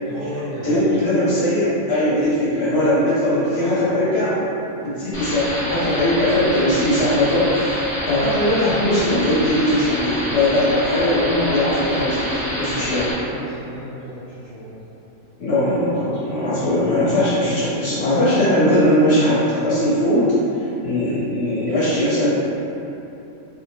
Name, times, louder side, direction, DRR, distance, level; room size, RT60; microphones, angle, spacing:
voice 1, 0.0-0.9 3.3-4.0 12.5-14.8 21.1-21.2, equal, 80° right, -11 dB, 0.5 m, -34 dB
voice 2, 0.6-4.3 4.8-13.1 15.4-20.3 20.8-22.3, left 1 dB, 55° left, -11 dB, 0.8 m, -19 dB
sound 1, 5.1-13.1, equal, 25° left, 0.5 m, -27 dB
2.5 x 2.0 x 2.9 m, 2.9 s
omnidirectional pair, 1.6 m